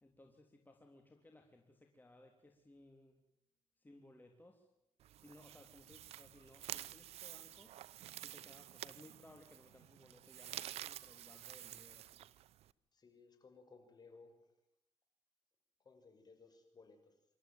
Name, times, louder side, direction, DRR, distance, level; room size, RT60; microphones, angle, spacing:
voice 1, 0.0-3.2 3.8-4.7 5.2-7.7 8.2-12.2, left 1 dB, 20° left, 2 dB, 3.5 m, -62 dB
sound 1, 5.0-12.7, right 13 dB, 85° right, 0.8 m, -50 dB
voice 2, 12.9-14.3 15.8-17.1, left 4 dB, 40° left, 6 dB, 6.7 m, -61 dB
27.0 x 13.5 x 9.2 m, 0.82 s
cardioid pair, 90°, 10 cm